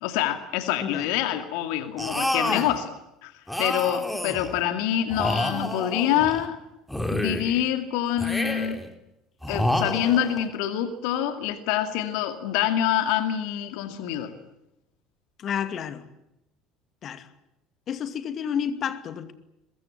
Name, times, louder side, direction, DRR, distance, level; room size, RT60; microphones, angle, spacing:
voice 1, 0.0-2.9 3.2-3.3 3.6-6.6 7.1-8.8 9.5-14.3, left 11 dB, 60° left, 2.2 m, -26 dB
sound 1, 2.0-2.8 3.5-4.6 5.1-6.5 6.9-7.7 8.2-8.9 9.4-10.4, left 1 dB, 5° left, 3.8 m, -28 dB
voice 2, 15.4-16.0 17.0-17.3 17.9-19.3, left 8 dB, 40° left, 2.4 m, -30 dB
23.5 x 22.0 x 9.8 m
figure-of-eight pair, 60°, 0 cm